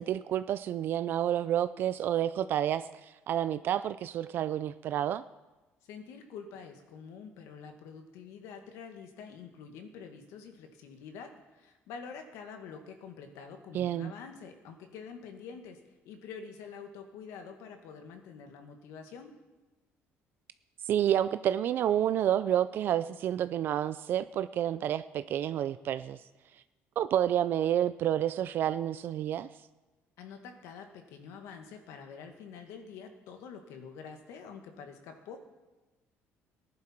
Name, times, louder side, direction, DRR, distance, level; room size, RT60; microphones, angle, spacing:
voice 1, 0.0-5.2 13.7-14.1 20.9-26.2 27.0-29.5, right 11 dB, 45° right, 13 dB, 0.3 m, -29 dB
voice 2, 5.8-19.3 30.2-35.4, left 6 dB, 85° left, 5 dB, 1.9 m, -47 dB
19.0 x 10.5 x 4.5 m, 1.2 s
cardioid pair, 175°, 5 cm